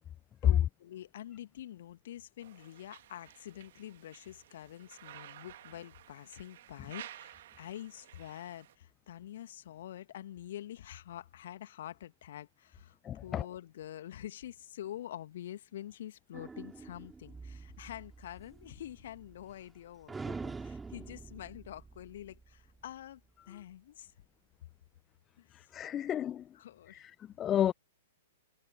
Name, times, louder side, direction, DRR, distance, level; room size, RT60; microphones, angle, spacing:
voice 1, 0.4-23.2 23.5-24.1 25.4-25.7 26.0-26.1 26.5-27.0, left 12 dB, 55° left, 1.9 m, -46 dB
sound 1, 2.4-8.7, right 13 dB, 50° right, 2.6 m, -53 dB
voice 2, 13.0-13.4 25.7-26.4 27.0-27.1 27.4-27.7, left 10 dB, 20° left, 0.8 m, -31 dB
sound 2, 16.3-19.8 20.1-22.8, right 4 dB, 10° right, 6.1 m, -46 dB
figure-of-eight pair, 105°, 0 cm